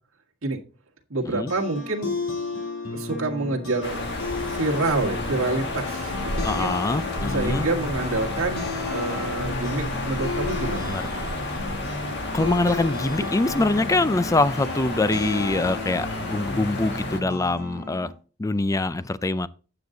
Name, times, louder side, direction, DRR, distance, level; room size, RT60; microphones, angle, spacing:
voice 1, 1.1-2.2 2.9-4.0 4.5-6.7 7.3-10.9, right 2 dB, 70° right, 1.9 m, -27 dB
sound 1, 1.2-18.1, left 3 dB, 80° left, 3.0 m, -33 dB
sound 2, 3.8-17.2, left 2 dB, 50° left, 1.8 m, -31 dB
voice 2, 6.4-7.7 10.9-11.0 12.3-18.1 18.4-19.5, left 2 dB, 15° left, 0.4 m, -24 dB
9.4 x 7.9 x 3.8 m
head